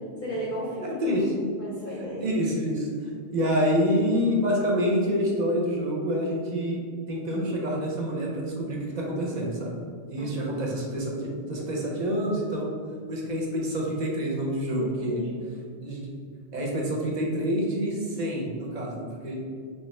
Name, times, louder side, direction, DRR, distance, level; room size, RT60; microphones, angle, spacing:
voice 1, 0.0-1.3 1.6-2.4 10.2-10.3 10.6-10.9 14.8-15.4, equal, 50° left, -6 dB, 0.7 m, -35 dB
voice 2, 1.0-1.5 1.9-6.8 7.1-9.8 10.1-12.7 13.1-15.2 15.8-16.0 16.5-19.4, equal, 45° right, -2 dB, 0.7 m, -27 dB
3.3 x 2.8 x 3.1 m, 2.1 s
omnidirectional pair, 1.2 m